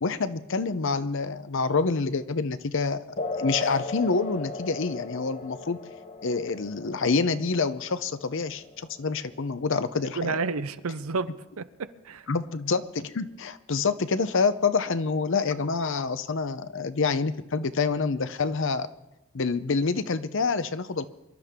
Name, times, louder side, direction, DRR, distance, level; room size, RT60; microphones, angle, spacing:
voice 1, 0.0-3.0 3.3-5.8 6.2-10.4 12.3-18.9 19.3-21.1, left 4 dB, 60° left, 0.7 m, -27 dB
sound 1, 3.2-10.2, left 3 dB, 35° left, 1.0 m, -37 dB
voice 2, 10.0-11.3 11.6-12.3, right 4 dB, 75° right, 0.7 m, -31 dB
25.0 x 12.0 x 3.7 m
head